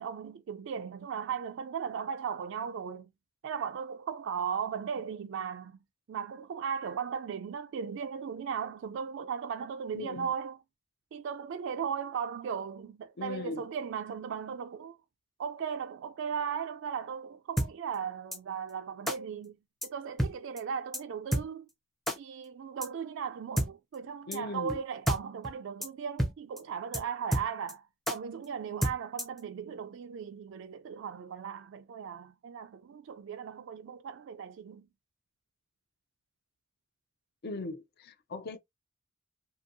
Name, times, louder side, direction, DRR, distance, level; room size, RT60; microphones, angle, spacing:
voice 1, 0.0-3.1 3.4-5.8 6.1-10.6 11.1-15.0 15.4-19.6 19.8-21.7 22.2-34.9, right 7 dB, 60° right, 0.3 m, -37 dB
voice 2, 9.9-10.3 13.2-13.7 24.3-24.8 37.4-38.6, left 2 dB, 50° left, 0.5 m, -39 dB
sound 1, 17.6-17.7 18.3-18.4 19.1-19.2 19.8-19.9 20.2-20.3 20.6-20.7 20.9-21.0 21.3-21.4 22.1-22.2 22.8-22.9 23.6-23.7 24.3-24.4 24.7-24.8 25.1-25.2 25.4-25.5 25.8-25.9 26.2-26.3 26.6-26.7 26.9-27.0 27.3-27.7 28.1-28.2 28.8-29.4, equal, ahead, 0.5 m, -29 dB
2.7 x 2.6 x 2.6 m
head